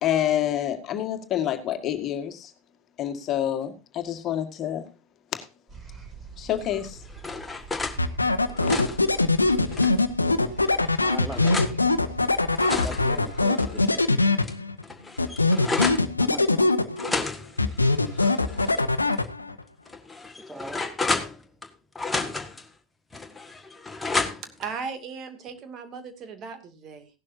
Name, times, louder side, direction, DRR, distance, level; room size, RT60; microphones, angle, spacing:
voice 1, 0.0-2.5 3.0-4.9 5.3-5.5 6.4-7.0, left 11 dB, 40° left, 7 dB, 1.8 m, -27 dB
sound 1, 5.7-13.3, right 5 dB, 25° right, 5.6 m, -44 dB
sound 2, 6.7-8.0 8.4-10.1 10.6-11.8 12.3-14.1 14.4-14.5 14.8-16.1 16.9-18.8 19.1-19.2 19.9-21.7 22.0-22.6 23.1-24.6, left 3 dB, 10° left, 1.7 m, -32 dB
sound 3, 8.0-14.8 15.2-17.2 17.6-19.6, left 3 dB, 90° left, 0.8 m, -22 dB
voice 2, 11.0-11.6 12.7-14.1 16.2-16.8 18.5-18.8 20.5-21.0, equal, 5° right, 11 dB, 1.1 m, -39 dB
voice 3, 24.4-27.1, right 5 dB, 40° right, 8 dB, 2.4 m, -37 dB
16.5 x 12.0 x 2.7 m, 0.29 s
figure-of-eight pair, 80°, 0 cm